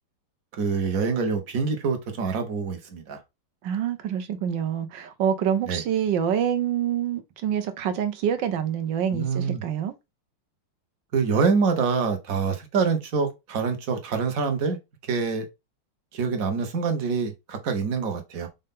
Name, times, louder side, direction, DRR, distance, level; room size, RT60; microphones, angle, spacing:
voice 1, 0.6-3.2 5.7-5.8 9.1-9.6 11.1-14.8 15.1-15.4 16.1-18.5, right 5 dB, 50° right, 1.4 m, -25 dB
voice 2, 3.6-9.9, right 9 dB, 70° right, 1.5 m, -26 dB
5.4 x 2.6 x 3.6 m
omnidirectional pair, 2.1 m